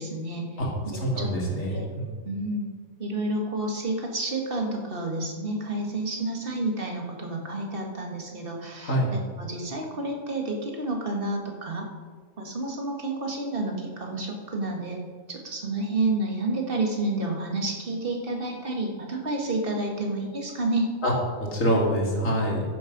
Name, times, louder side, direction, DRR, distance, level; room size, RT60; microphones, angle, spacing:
voice 1, 0.0-0.5 0.9-1.3 1.7-1.9 2.3-2.7 3.0-11.9 12.4-15.0 15.3-20.9, right 2 dB, 40° right, 1 dB, 2.0 m, -30 dB
voice 2, 0.9-2.1 8.8-9.1 21.0-21.1 21.4-22.6, equal, 60° left, -2 dB, 2.8 m, -25 dB
14.0 x 7.6 x 5.3 m, 1.5 s
omnidirectional pair, 1.5 m